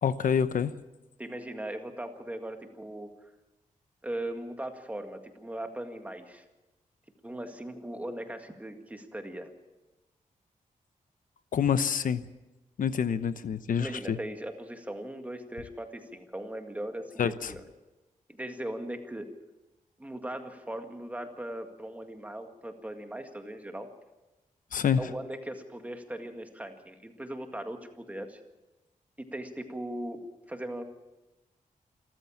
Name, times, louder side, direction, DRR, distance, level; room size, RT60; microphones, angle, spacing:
voice 1, 0.0-0.7 11.5-12.3 12.8-14.2 17.2-17.5 24.7-25.0, left 7 dB, 75° left, 12 dB, 0.9 m, -27 dB
voice 2, 1.2-3.1 4.0-6.4 7.2-9.5 13.8-17.6 18.3-19.3 20.0-23.9 25.0-28.4 29.2-30.8, right 1 dB, 10° right, 5 dB, 1.9 m, -39 dB
27.5 x 14.0 x 7.3 m, 1.0 s
wide cardioid pair, 165°, 14 cm